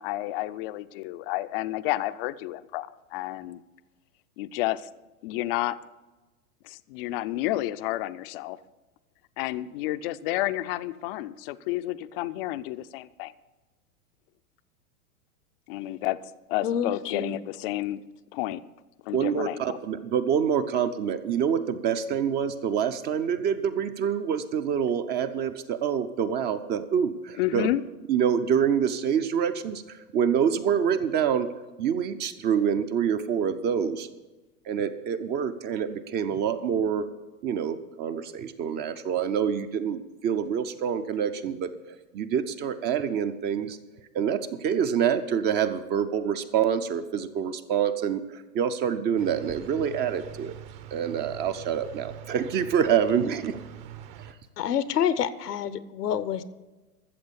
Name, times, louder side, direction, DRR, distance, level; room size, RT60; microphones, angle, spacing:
voice 1, 0.0-3.6 4.4-4.9 5.2-5.8 6.6-8.6 9.4-13.3 15.7-18.0 18.3-18.6 19.1-19.8 27.4-27.8, left 15 dB, 40° left, 13 dB, 0.5 m, -30 dB
voice 2, 16.6-17.4 54.6-56.4, left 8 dB, 85° left, 15 dB, 1.0 m, -27 dB
voice 3, 19.1-27.7 28.1-31.5 31.8-34.1 34.7-37.1 37.4-43.8 44.1-50.5 50.9-53.6, right 8 dB, 25° right, 11 dB, 0.5 m, -26 dB
sound 1, 49.2-54.3, right 11 dB, 45° right, 1.1 m, -43 dB
13.5 x 7.3 x 6.9 m, 1.1 s
hypercardioid pair, 120°, 46 cm